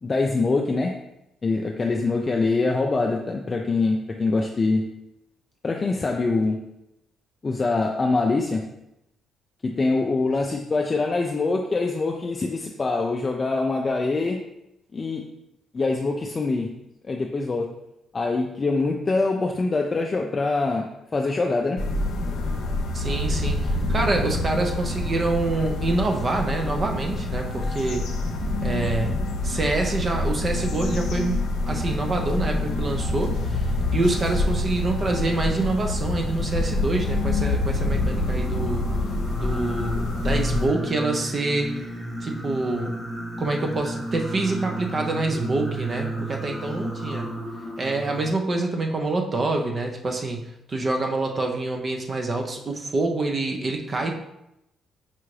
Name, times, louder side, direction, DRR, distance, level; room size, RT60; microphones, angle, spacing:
voice 1, 0.0-1.0 1.4-4.9 5.6-6.6 7.4-8.7 9.6-14.5 14.9-15.3 15.7-16.7 17.0-17.8 18.1-21.9, left 3 dB, 30° left, 2 dB, 0.4 m, -24 dB
sound 1, 21.8-40.7, left 2 dB, 85° left, 0.6 m, -26 dB
voice 2, 22.9-28.1 28.6-38.9 39.4-41.7 42.2-43.0 43.4-47.3 47.8-54.1, right 2 dB, 40° right, 3 dB, 0.5 m, -26 dB
Singing, 37.6-48.3, right 1 dB, 5° right, 0.8 m, -32 dB
5.5 x 2.5 x 3.1 m, 0.85 s
cardioid pair, 90°, 0 cm